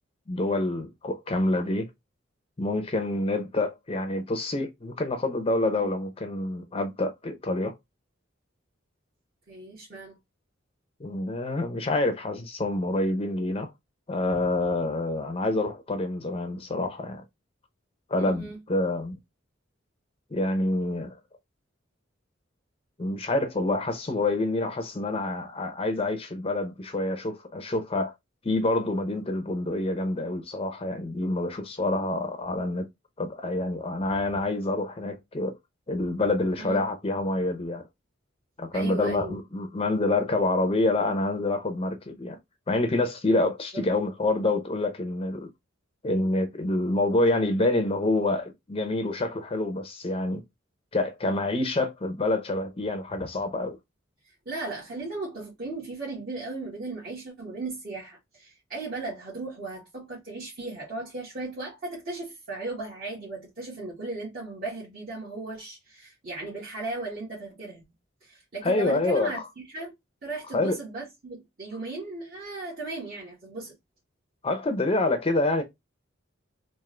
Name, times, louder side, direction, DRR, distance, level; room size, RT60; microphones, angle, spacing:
voice 1, 0.3-1.9 2.6-7.7 11.0-13.7 14.1-17.2 18.1-19.2 20.3-21.2 23.0-28.1 28.4-32.9 33.2-35.5 35.9-37.8 38.6-42.4 42.7-45.5 46.0-50.4 50.9-53.8 68.6-69.5 70.5-70.8 74.4-75.6, left 2 dB, 30° left, 0.6 m, -27 dB
voice 2, 9.5-10.2 18.2-18.6 36.6-36.8 38.7-39.4 43.7-43.8 54.3-67.8 68.2-69.4 69.7-69.9 70.2-73.7, right 3 dB, 50° right, 1.7 m, -36 dB
3.7 x 2.6 x 3.2 m
head